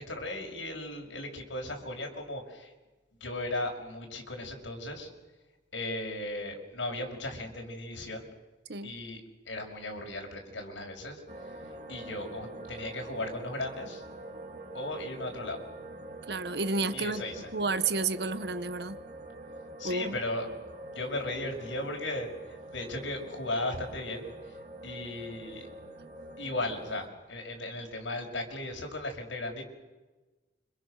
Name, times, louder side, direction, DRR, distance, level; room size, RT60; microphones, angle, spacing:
voice 1, 0.0-2.7 3.2-5.1 5.7-8.3 8.8-11.2 11.9-14.0 14.7-15.6 16.9-17.5 19.8-20.5 20.9-24.3 24.8-25.6 26.4-29.6, left 2 dB, 90° left, 2 dB, 6.1 m, -36 dB
sound 1, 11.3-27.1, right 1 dB, 40° right, 2.7 m, -45 dB
voice 2, 16.3-17.2 17.5-19.0 19.8-20.2, right 3 dB, 60° right, 12 dB, 1.2 m, -31 dB
29.5 x 27.0 x 6.5 m, 1.2 s
head